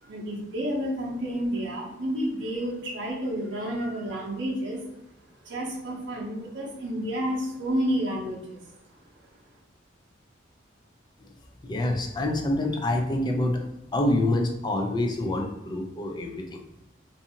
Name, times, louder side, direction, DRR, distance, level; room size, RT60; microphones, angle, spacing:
voice 1, 0.0-4.8 5.4-8.7, equal, 70° right, -3 dB, 0.7 m, -30 dB
voice 2, 11.7-13.7 13.9-16.4, left 1 dB, 25° left, 3 dB, 0.3 m, -26 dB
2.6 x 2.5 x 2.7 m, 0.82 s
head